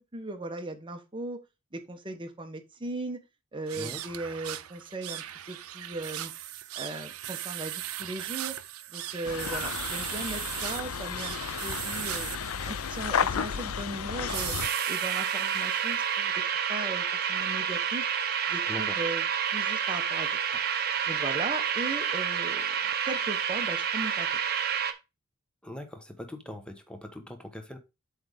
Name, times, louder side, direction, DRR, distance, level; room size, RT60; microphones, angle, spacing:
voice 1, 0.1-1.4 1.7-3.2 3.5-6.3 6.7-8.6 8.9-12.3 12.6-14.5 14.8-16.3 16.7-18.1 18.5-19.2 19.5-20.3 21.1-22.7 23.0-24.4, right 2 dB, 25° right, 1.1 m, -37 dB
sound 1, 3.6-16.1, right 13 dB, 85° right, 0.6 m, -38 dB
sound 2, 9.2-14.7, left 7 dB, 75° left, 0.5 m, -33 dB
sound 3, 14.6-24.9, right 8 dB, 45° right, 0.9 m, -29 dB
voice 2, 25.6-27.8, left 1 dB, 5° left, 1.1 m, -41 dB
7.9 x 3.5 x 5.1 m
head